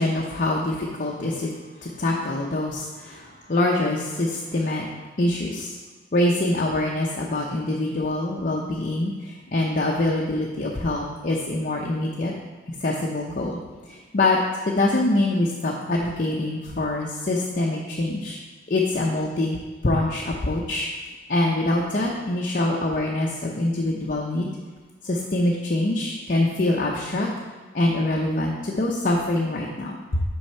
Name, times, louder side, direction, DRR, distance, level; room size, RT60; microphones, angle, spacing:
voice 1, 0.0-1.5 1.8-4.9 5.2-5.8 6.1-12.3 12.8-13.6 13.9-14.4 14.6-18.4 18.7-19.6 19.8-20.9 21.3-24.5 25.0-27.3 27.7-30.2, left 2 dB, 45° left, -2 dB, 0.6 m, -24 dB
6.0 x 5.5 x 4.4 m, 1.4 s
head